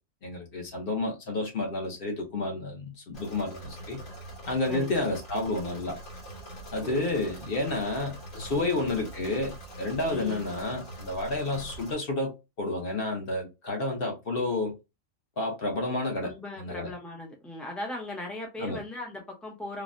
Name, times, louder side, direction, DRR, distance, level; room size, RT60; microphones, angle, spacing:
voice 1, 0.2-4.0 4.5-6.0 6.7-14.8 15.4-16.9 18.6-18.8, left 2 dB, 50° left, 1.0 m, -30 dB
Engine / Mechanisms, 3.1-11.9, right 1 dB, 80° left, 1.9 m, -43 dB
voice 2, 4.7-5.1 6.8-7.1 8.5-8.9 10.1-10.4 16.2-19.8, left 1 dB, ahead, 0.5 m, -39 dB
3.4 x 2.1 x 2.5 m
omnidirectional pair, 1.3 m